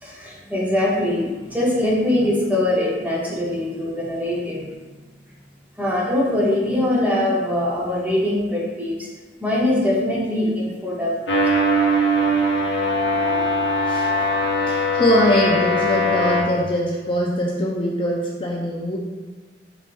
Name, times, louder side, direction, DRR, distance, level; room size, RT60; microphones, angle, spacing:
voice 1, 0.0-4.8 5.8-9.1 9.4-11.2, left 1 dB, 10° right, -5 dB, 0.8 m, -22 dB
sound 1, 11.3-16.4, equal, 90° left, 0.7 m, -20 dB
voice 2, 13.2-13.5 13.9-14.1 14.7-19.0, equal, 30° left, -2 dB, 0.4 m, -22 dB
4.1 x 3.4 x 2.5 m, 1.3 s
head